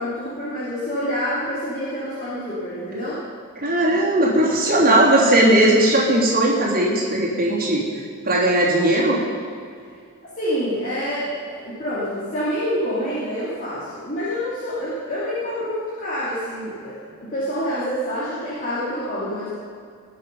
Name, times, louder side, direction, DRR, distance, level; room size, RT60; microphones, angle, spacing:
voice 1, 0.0-3.2 4.8-5.0 10.4-19.5, equal, 40° left, -10 dB, 3.1 m, -27 dB
voice 2, 3.6-7.8 8.2-9.2, right 1 dB, 45° right, -6 dB, 3.1 m, -18 dB
20.0 x 7.3 x 5.5 m, 2.3 s
head